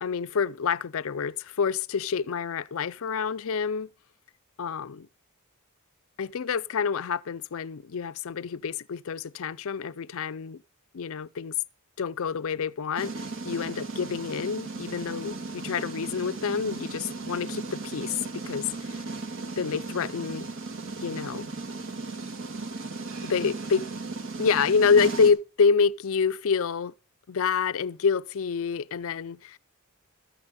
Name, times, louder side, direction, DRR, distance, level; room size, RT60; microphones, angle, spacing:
voice 1, 0.0-3.9 4.6-5.1 6.2-10.6 10.9-11.5 12.0-19.0 19.6-20.5 21.0-21.5 23.2-23.8 24.4-26.9 27.3-29.6, left 5 dB, 65° left, 0.5 m, -27 dB
sound 1, 13.0-25.3, right 3 dB, 60° right, 2.0 m, -36 dB
13.5 x 9.7 x 4.2 m
head